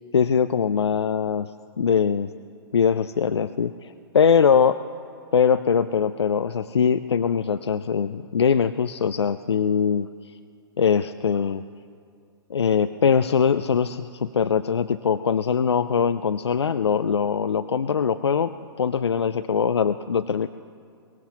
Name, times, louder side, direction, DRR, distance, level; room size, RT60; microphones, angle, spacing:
voice 1, 0.1-1.5 1.8-2.3 2.7-4.8 5.3-10.1 10.8-11.6 12.5-18.5 18.8-20.5, left 7 dB, 80° left, 11 dB, 0.4 m, -22 dB
23.0 x 19.5 x 2.9 m, 2.3 s
figure-of-eight pair, 110°, 14 cm